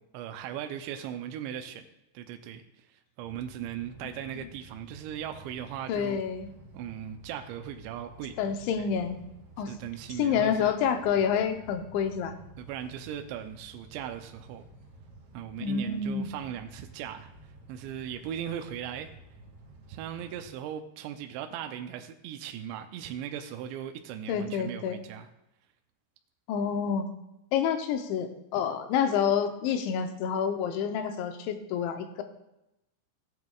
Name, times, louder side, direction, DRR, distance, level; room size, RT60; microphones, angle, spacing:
voice 1, 0.1-1.9 2.1-2.6 3.2-6.2 6.7-8.3 8.8-8.9 9.7-10.8 12.6-14.7 15.3-17.3 17.7-19.1 19.9-25.3, right 10 dB, 80° right, 6 dB, 2.8 m, -38 dB
sound 1, 3.2-20.5, right 2 dB, 50° right, 2.9 m, -52 dB
voice 2, 5.9-6.5 8.4-9.2 9.6-9.7 10.2-12.4 15.6-16.3 24.3-25.0 26.5-27.1 27.5-32.2, left 7 dB, 80° left, 7 dB, 3.2 m, -28 dB
17.0 x 9.4 x 2.4 m, 0.89 s
omnidirectional pair, 5.3 m